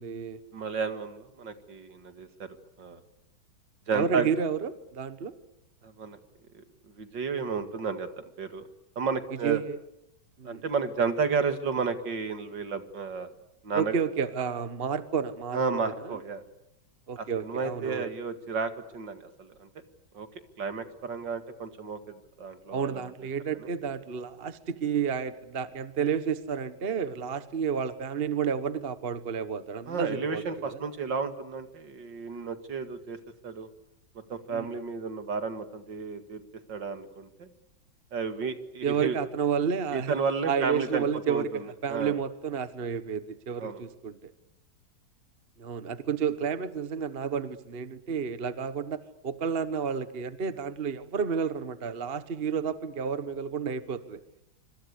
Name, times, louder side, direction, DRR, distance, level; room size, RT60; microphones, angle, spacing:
voice 1, 0.0-0.4 3.9-5.3 9.4-9.8 10.4-10.6 13.7-16.2 17.1-18.1 22.7-30.8 34.5-34.8 38.8-40.1 40.5-44.3 45.6-54.2, right 7 dB, 35° right, 13 dB, 1.2 m, -31 dB
voice 2, 0.5-3.0 3.9-4.3 5.8-6.2 6.5-8.7 9.0-9.6 10.4-13.3 13.6-14.0 15.5-16.4 17.2-19.7 20.1-20.3 20.6-23.1 23.5-23.7 29.9-33.2 33.4-33.7 34.1-36.4 36.7-37.5 38.1-39.2 39.9-42.2 43.6-43.8, right 5 dB, 65° right, 9 dB, 2.7 m, -32 dB
26.0 x 25.5 x 8.3 m, 0.82 s
omnidirectional pair, 2.1 m